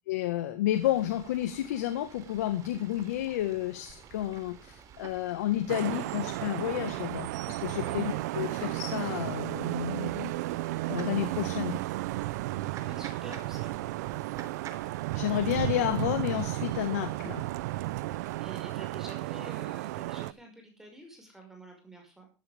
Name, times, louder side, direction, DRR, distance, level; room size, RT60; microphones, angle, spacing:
voice 1, 0.1-10.3 10.9-11.8 15.1-17.4, left 13 dB, 85° left, 8 dB, 1.7 m, -31 dB
Fowl / Bird, 0.7-18.4, right 8 dB, 40° right, 3.4 m, -51 dB
Vehicle horn car horn honking / Traffic noise roadway noise, 5.7-20.3, right 18 dB, 80° right, 0.7 m, -33 dB
voice 2, 12.5-13.8 18.4-22.3, right 1 dB, 5° right, 2 dB, 5.9 m, -48 dB
14.0 x 13.0 x 3.6 m, 0.31 s
supercardioid pair, 130°, 9 cm